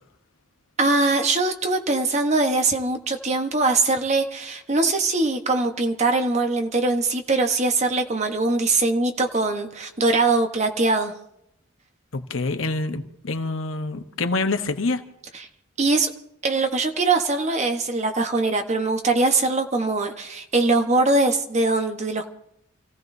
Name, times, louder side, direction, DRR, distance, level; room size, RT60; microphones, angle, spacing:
voice 1, 0.8-11.1 15.3-15.5 15.8-16.1 16.4-22.3, right 3 dB, 35° right, 1.1 m, -22 dB
voice 2, 12.1-15.0, left 3 dB, 70° left, 1.1 m, -26 dB
28.5 x 15.5 x 2.7 m
head